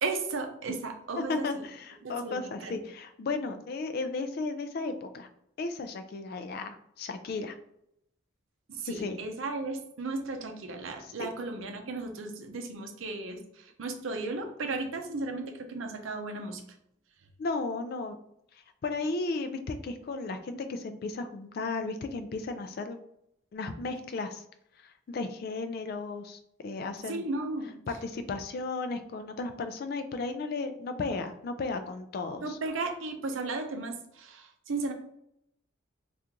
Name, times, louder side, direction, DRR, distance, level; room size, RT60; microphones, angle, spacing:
voice 1, 0.0-1.5 2.0-2.7 8.7-16.6 27.1-27.7 32.4-34.9, right 3 dB, 75° right, 5 dB, 0.5 m, -35 dB
voice 2, 1.3-5.3 5.6-7.5 8.9-9.2 11.2-11.3 17.4-18.2 18.8-23.0 23.5-24.4 25.1-27.2 27.9-32.4, left 3 dB, 50° left, 8 dB, 0.3 m, -34 dB
2.9 x 2.4 x 3.6 m, 0.75 s
head